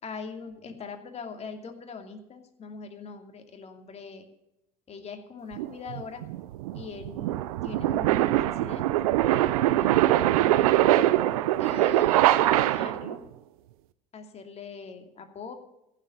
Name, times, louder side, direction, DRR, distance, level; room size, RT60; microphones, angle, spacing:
voice 1, 0.0-4.3 4.9-6.2 6.7-9.1 9.4-10.7 11.6-13.3 14.1-15.5, left 5 dB, 35° left, 5 dB, 2.6 m, -42 dB
sound 1, 5.6-13.2, right 14 dB, 75° right, 0.7 m, -23 dB
15.5 x 7.5 x 8.9 m, 0.87 s
hypercardioid pair, 75°, 18 cm